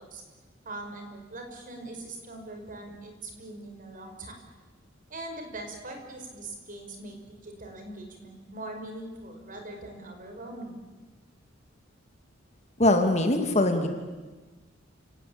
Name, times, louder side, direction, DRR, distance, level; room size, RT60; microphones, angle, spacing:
voice 1, 0.7-4.4 5.1-10.8, right 2 dB, 45° right, 4 dB, 5.4 m, -41 dB
voice 2, 12.8-13.9, left 1 dB, 35° left, 5 dB, 2.5 m, -22 dB
29.5 x 17.5 x 8.8 m, 1.3 s
head